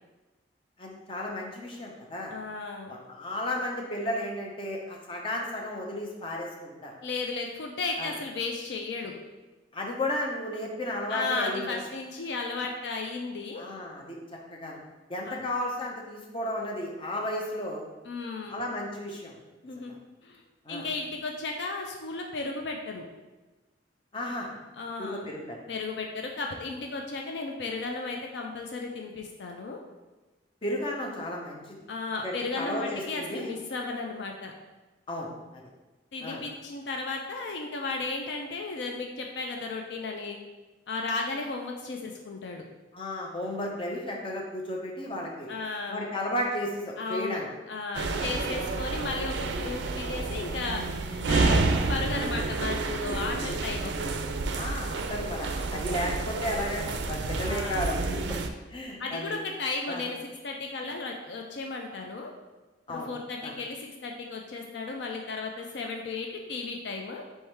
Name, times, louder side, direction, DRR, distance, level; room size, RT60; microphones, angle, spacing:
voice 1, 0.8-2.3 2.9-6.9 8.0-8.1 9.7-11.7 13.6-14.2 14.5-14.8 15.1-17.8 18.5-19.3 19.9-20.0 20.6-20.9 24.1-24.6 25.0-25.6 30.6-31.7 32.2-33.5 35.1-35.6 36.2-36.4 42.9-45.5 45.9-47.5 48.2-48.3 54.5-58.4 58.7-59.3 59.9-60.0 62.9-63.1 63.4-63.5, left 1 dB, 30° left, -1 dB, 0.7 m, -33 dB
voice 2, 2.3-3.0 7.0-9.1 11.1-13.6 15.3-15.4 18.0-18.6 19.6-19.9 20.2-20.4 20.7-23.1 24.7-25.3 25.7-29.8 31.9-34.5 36.1-40.4 40.9-42.6 45.5-46.1 47.0-51.6 51.9-54.1 55.9-56.1 57.4-57.9 59.0-60.2 60.4-62.3 62.9-67.2, left 3 dB, 65° left, 2 dB, 0.4 m, -34 dB
sound 1, 47.9-58.5, right 3 dB, 70° right, 0.4 m, -29 dB
3.5 x 3.1 x 4.4 m, 1.2 s
head